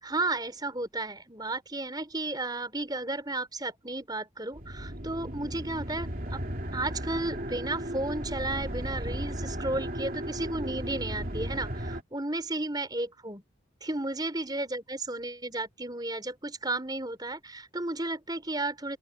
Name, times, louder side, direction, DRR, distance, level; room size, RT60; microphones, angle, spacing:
voice 1, 0.0-6.4 6.7-13.4 13.8-19.0, right 2 dB, 20° right, 5.2 m, -33 dB
sound 1, 4.5-12.0, right 1 dB, 45° right, 3.2 m, -35 dB
open air
head